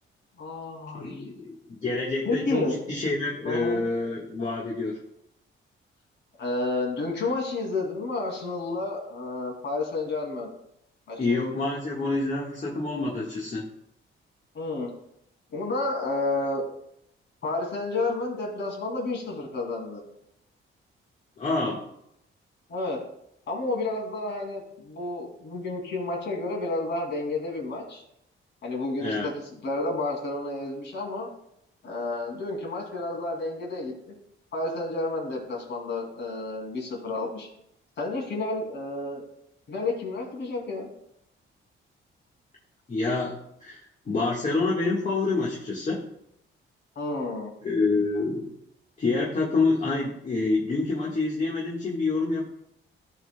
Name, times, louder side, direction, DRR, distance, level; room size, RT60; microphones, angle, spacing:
voice 1, 0.4-1.3 2.3-2.7 3.4-3.8 6.4-10.5 11.1-11.4 14.5-14.9 15.5-16.6 17.4-20.0 22.7-23.0 23.5-28.0 28.6-31.3 31.8-34.1 34.5-37.5 38.0-39.2 39.7-40.9 47.0-47.5, left 2 dB, 55° left, 0 dB, 2.4 m, -30 dB
voice 2, 1.0-5.0 11.2-13.7 21.4-21.8 29.0-29.3 42.9-43.3 43.6-43.8 44.0-46.1 47.6-48.5 49.0-52.4, left 3 dB, 35° left, -4 dB, 1.5 m, -27 dB
15.0 x 5.5 x 2.2 m, 0.78 s
cardioid pair, 130°, 21 cm